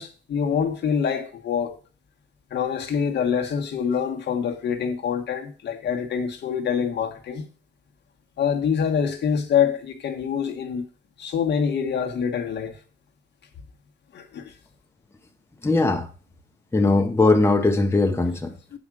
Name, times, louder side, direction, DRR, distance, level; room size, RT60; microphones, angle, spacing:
voice 1, 0.0-1.8 2.5-7.5 8.4-10.8 11.2-12.8 14.1-14.5 18.7-18.8, left 7 dB, 60° left, 1.3 m, -25 dB
voice 2, 15.6-16.1 16.7-18.5, left 2 dB, 10° left, 1.0 m, -19 dB
7.1 x 5.1 x 6.1 m
cardioid pair, 90°, 20 cm